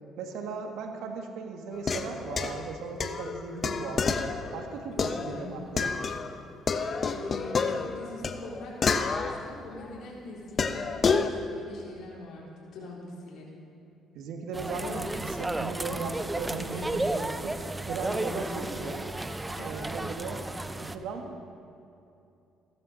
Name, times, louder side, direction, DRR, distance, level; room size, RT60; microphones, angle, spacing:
voice 1, 0.2-4.2 4.5-6.0 14.2-17.6 17.9-19.2 19.6-20.4 20.8-21.4, right 4 dB, 75° right, 3 dB, 1.7 m, -37 dB
sound 1, 1.7-6.4 6.7-9.9 10.6-11.3, left 5 dB, 45° left, 0.8 m, -29 dB
voice 2, 5.0-5.6 7.1-13.5 14.7-15.1 16.6-16.9 18.8-18.9 19.6-20.0, left 2 dB, 65° left, -4 dB, 4.0 m, -43 dB
sound 2, 14.5-21.0, right 2 dB, 15° right, 0.7 m, -33 dB
16.0 x 13.5 x 4.1 m, 2.6 s
supercardioid pair, 70°, 0 cm